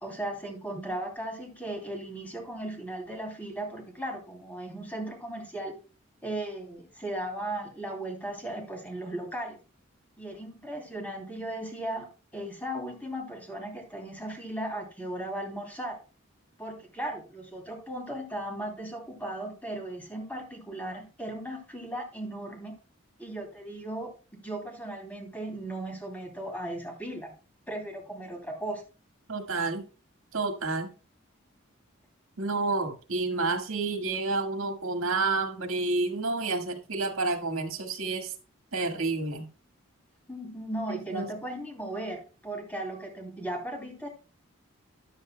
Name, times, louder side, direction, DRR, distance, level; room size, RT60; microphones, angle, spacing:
voice 1, 0.0-5.7 6.2-9.6 10.2-16.0 16.6-22.7 23.2-24.1 24.4-27.3 27.7-28.8 40.3-44.1, right 1 dB, 10° left, 3.0 m, -37 dB
voice 2, 29.3-29.8 30.3-30.9 32.4-38.3 38.7-39.5 41.1-41.3, right 3 dB, 85° right, 1.8 m, -29 dB
13.5 x 10.5 x 2.2 m
head